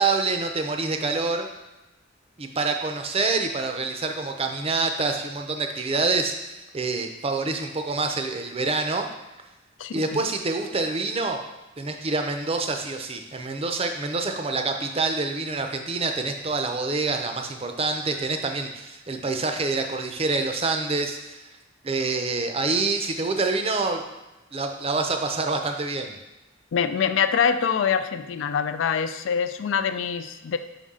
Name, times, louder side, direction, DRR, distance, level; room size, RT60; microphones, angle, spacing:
voice 1, 0.0-1.5 2.4-9.1 9.9-11.4 11.8-21.5 21.8-24.0 24.5-26.2, right 3 dB, 30° right, 5 dB, 0.5 m, -26 dB
voice 2, 9.8-10.3 26.7-30.6, left 7 dB, 70° left, 10 dB, 0.4 m, -25 dB
5.4 x 5.0 x 3.7 m, 1.0 s
head